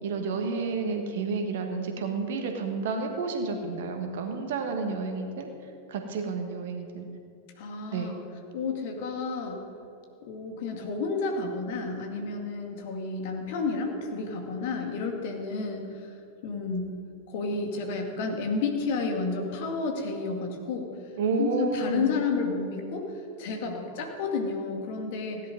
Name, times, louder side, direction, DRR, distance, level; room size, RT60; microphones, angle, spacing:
voice 1, 0.0-5.5 5.9-7.0 7.9-8.1 21.2-22.2, right 4 dB, 55° right, 5 dB, 1.6 m, -30 dB
voice 2, 7.6-8.1 8.5-9.6 10.3-16.1 16.4-16.9 17.3-20.9 21.4-23.1 23.4-25.4, left 4 dB, 50° left, 3 dB, 2.2 m, -31 dB
16.5 x 10.5 x 5.3 m, 2.5 s
figure-of-eight pair, 90°, 0 cm